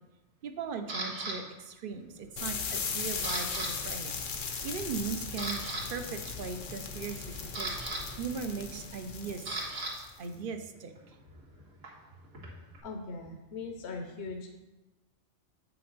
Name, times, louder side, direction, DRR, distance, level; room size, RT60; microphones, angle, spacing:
voice 1, 0.4-5.6 5.9-9.6 9.9-10.9, right 5 dB, 55° right, 7 dB, 0.7 m, -39 dB
Camera, 0.9-1.4 2.0-2.3 2.6-3.7 4.0-4.2 4.7-4.8 5.2-5.8 7.0-9.9 10.2-12.8, right 2 dB, 90° right, 2.0 m, -38 dB
sound 1, 2.4-10.3, left 5 dB, 80° left, 1.2 m, -38 dB
voice 2, 12.8-14.5, left 3 dB, 65° left, 3 dB, 0.9 m, -40 dB
7.5 x 6.0 x 3.9 m, 1.1 s
omnidirectional pair, 1.3 m